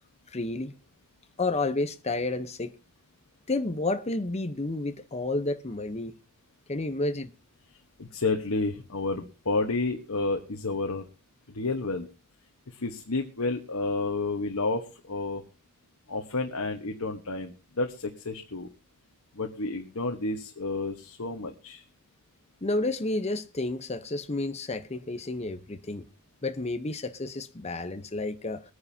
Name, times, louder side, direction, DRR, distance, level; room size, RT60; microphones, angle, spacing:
voice 1, 0.3-0.7 1.4-2.7 3.5-6.1 6.7-7.3 22.6-26.0 26.4-28.6, left 2 dB, 30° left, 0.9 m, -30 dB
voice 2, 8.0-11.1 11.5-12.1 12.7-15.4 16.1-18.7 19.3-21.8, left 3 dB, 75° left, 1.3 m, -30 dB
23.5 x 9.6 x 2.8 m
head